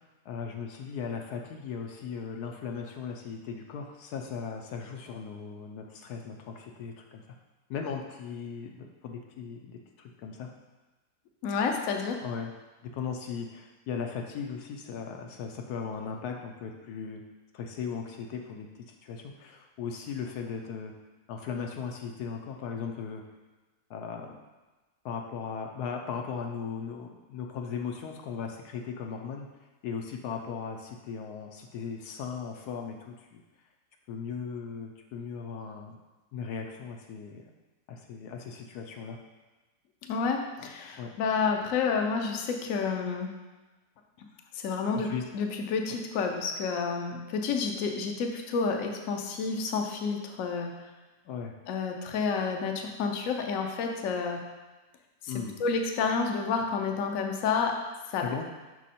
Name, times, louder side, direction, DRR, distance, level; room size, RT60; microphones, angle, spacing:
voice 1, 0.2-7.4 7.7-10.5 12.2-12.5 12.8-17.2 17.5-20.9 21.3-23.2 23.9-24.4 25.0-29.5 29.8-33.4 34.1-36.0 36.3-37.4 37.9-39.2 40.6-40.7 41.0-41.1 45.0-45.2 51.2-51.6 55.3-55.6 58.2-58.5, left 6 dB, 80° left, 2 dB, 1.2 m, -37 dB
voice 2, 11.4-12.2 40.1-43.3 44.5-45.1 45.3-50.7 51.7-54.4 55.2-55.3 55.6-57.7 58.1-58.2, left 5 dB, 60° left, 3 dB, 1.0 m, -29 dB
6.3 x 4.5 x 4.2 m, 1.2 s
omnidirectional pair, 1.7 m